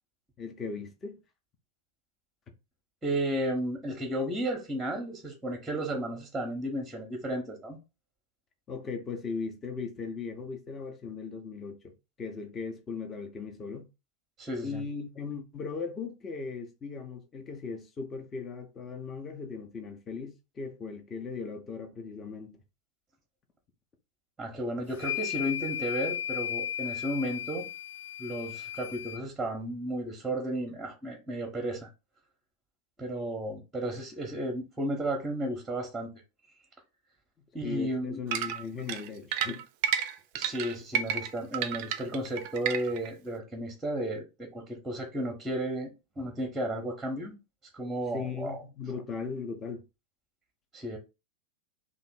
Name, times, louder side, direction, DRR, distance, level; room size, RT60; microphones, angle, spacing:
voice 1, 0.4-1.2 8.7-11.9 12.2-13.9 14.6-22.6 37.6-39.6 48.1-49.8, left 5 dB, 25° left, 0.7 m, -38 dB
voice 2, 3.0-7.8 14.4-14.8 24.4-27.7 28.2-31.9 33.0-36.1 37.5-38.2 40.3-47.3 47.7-48.6 50.7-51.0, right 1 dB, 10° right, 0.8 m, -33 dB
sound 1, 24.9-29.2, left 11 dB, 55° left, 0.3 m, -35 dB
sound 2, 38.3-43.1, right 9 dB, 45° right, 0.4 m, -31 dB
2.9 x 2.5 x 4.3 m
figure-of-eight pair, 90°, 0 cm